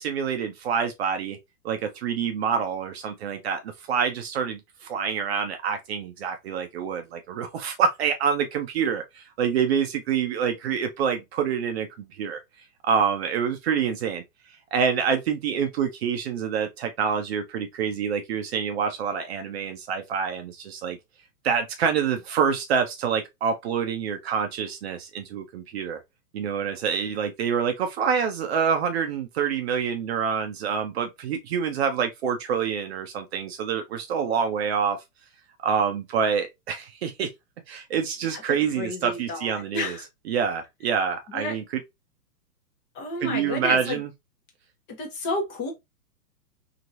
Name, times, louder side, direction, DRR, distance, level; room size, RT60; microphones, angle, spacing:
voice 1, 0.0-1.4 1.6-3.6 3.9-12.4 12.8-14.2 14.7-21.0 21.4-26.0 26.3-35.0 35.6-37.3 37.7-40.0 40.3-41.6 43.2-44.1, right 7 dB, 40° right, 0.6 m, -26 dB
voice 2, 38.7-40.1 41.3-41.6 42.9-44.0 44.9-45.7, left 2 dB, 25° left, 1.0 m, -31 dB
2.9 x 2.8 x 2.5 m
figure-of-eight pair, 115°, 47 cm